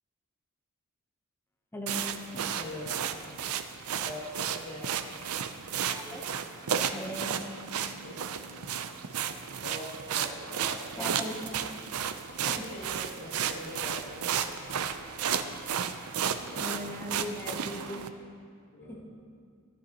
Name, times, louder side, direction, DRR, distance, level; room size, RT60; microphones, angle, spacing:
voice 1, 1.7-2.1 5.9-6.2 6.9-7.5 11.0-11.4 11.7-11.8 12.6-12.7 16.5-18.3 18.9-19.1, equal, 10° left, 0 dB, 0.7 m, -39 dB
sound 1, 1.9-18.1, right 8 dB, 75° right, 0.5 m, -33 dB
voice 2, 2.4-3.1 4.0-4.9 8.0-8.4 9.6-10.8 12.4-14.3 16.5-17.0 18.7-19.0, left 1 dB, 60° left, -11 dB, 2.5 m, -43 dB
14.5 x 10.0 x 2.9 m, 2.1 s
head